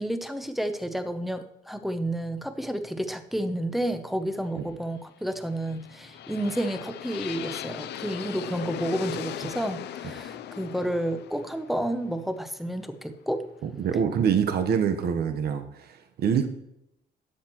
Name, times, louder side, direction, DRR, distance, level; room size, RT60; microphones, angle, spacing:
voice 1, 0.0-13.5, right 1 dB, ahead, 9 dB, 0.7 m, -30 dB
sound 1, 5.5-13.4, left 11 dB, 80° left, 0.5 m, -39 dB
voice 2, 13.6-16.5, right 7 dB, 70° right, 6 dB, 1.1 m, -25 dB
12.5 x 7.9 x 3.0 m, 0.82 s
cardioid pair, 145°, 17 cm